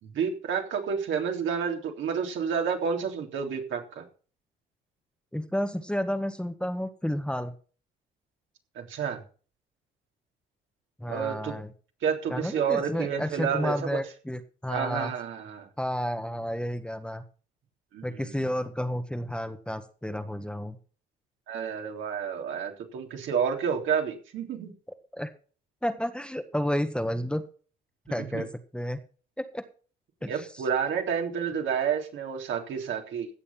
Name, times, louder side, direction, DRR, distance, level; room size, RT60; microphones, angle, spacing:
voice 1, 0.0-4.1 8.8-9.2 11.1-11.6 12.0-14.0 14.7-15.7 17.9-18.4 21.5-24.7 28.2-28.5 30.3-33.3, right 7 dB, 70° right, 2 dB, 3.5 m, -30 dB
voice 2, 5.3-7.5 11.0-11.7 12.3-15.1 15.8-17.2 18.0-20.8 25.1-25.3 25.8-27.4 28.1-29.0 29.4-29.6 30.2-30.5, equal, 5° left, 8 dB, 1.6 m, -31 dB
16.5 x 6.9 x 5.7 m, 0.40 s
supercardioid pair, 70°, 21 cm